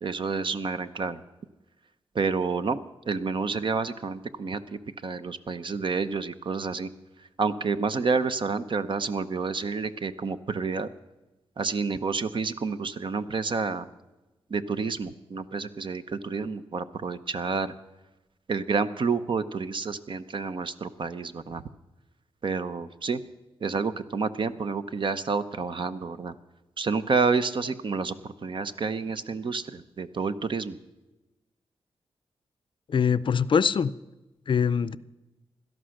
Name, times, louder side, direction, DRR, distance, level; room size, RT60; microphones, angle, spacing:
voice 1, 0.0-1.2 2.1-2.8 3.1-6.9 7.4-10.9 11.6-13.9 14.5-17.7 18.5-21.6 22.4-23.2 23.6-26.3 26.8-30.8, right 4 dB, 55° right, 11 dB, 0.8 m, -29 dB
voice 2, 32.9-33.9 34.5-35.0, left 6 dB, 55° left, 18 dB, 0.5 m, -23 dB
17.5 x 12.5 x 6.5 m, 1.1 s
wide cardioid pair, 100°, 10 cm